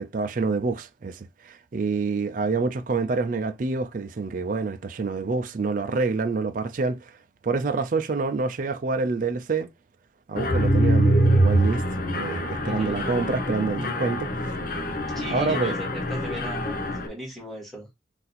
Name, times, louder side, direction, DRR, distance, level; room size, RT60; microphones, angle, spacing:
voice 1, 0.0-7.2 7.4-9.7 10.3-14.5 15.3-15.7, right 4 dB, 45° right, 0.4 m, -27 dB
Mechanisms, 10.4-17.1, right 1 dB, 50° left, 0.8 m, -24 dB
voice 2, 12.6-13.0 15.0-17.9, equal, ahead, 1.9 m, -38 dB
4.1 x 2.6 x 4.1 m
head